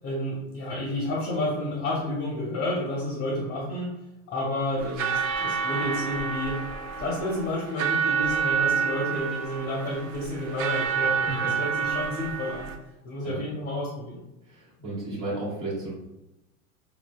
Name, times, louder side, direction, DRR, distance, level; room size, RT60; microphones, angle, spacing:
voice 1, 0.0-3.9 4.3-6.6 7.0-12.7 13.0-14.2, left 1 dB, 25° left, -1 dB, 0.6 m, -30 dB
sound 1, 4.8-12.8, right 7 dB, 70° right, 0.6 m, -28 dB
voice 2, 14.5-15.9, right 2 dB, 50° right, -9 dB, 1.4 m, -33 dB
3.7 x 2.4 x 2.2 m, 0.95 s
hypercardioid pair, 105°, 43 cm